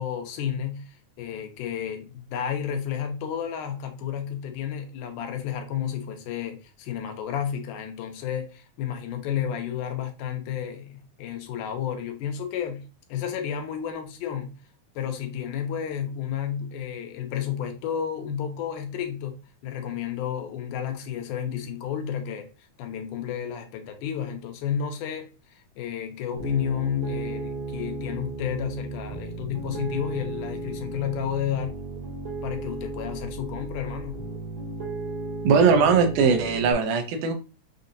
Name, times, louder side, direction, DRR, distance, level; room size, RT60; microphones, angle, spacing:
voice 1, 0.0-14.6 15.0-19.4 19.6-22.5 22.8-31.8 32.4-34.2, left 9 dB, 80° left, 2.3 m, -31 dB
Piano, 26.4-36.7, right 3 dB, 55° right, 1.2 m, -35 dB
voice 2, 35.4-37.3, right 5 dB, 85° right, 2.3 m, -20 dB
6.1 x 2.8 x 2.6 m
omnidirectional pair, 3.6 m